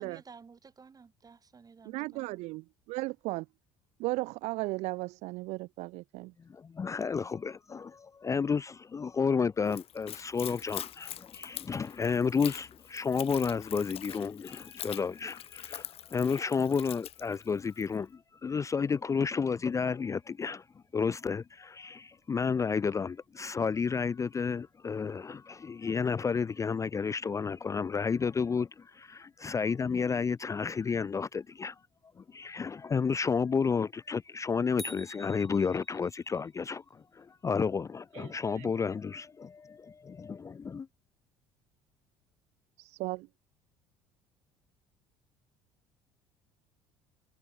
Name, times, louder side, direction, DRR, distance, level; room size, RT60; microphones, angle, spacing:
voice 1, 0.0-2.4, right 5 dB, 25° right, 1.8 m, -54 dB
voice 2, 1.9-3.5 4.0-6.3 38.1-38.7 42.8-43.3, right 22 dB, 55° right, 0.4 m, -36 dB
voice 3, 6.5-18.1 18.4-20.6 20.9-31.7 32.3-40.9, left 5 dB, 25° left, 0.5 m, -31 dB
Splash splatter / Trickle dribble, 9.6-18.0, left 11 dB, 45° left, 0.9 m, -44 dB
sound 1, 34.8-36.4, equal, ahead, 1.7 m, -47 dB
figure-of-eight pair, 60°, 14 cm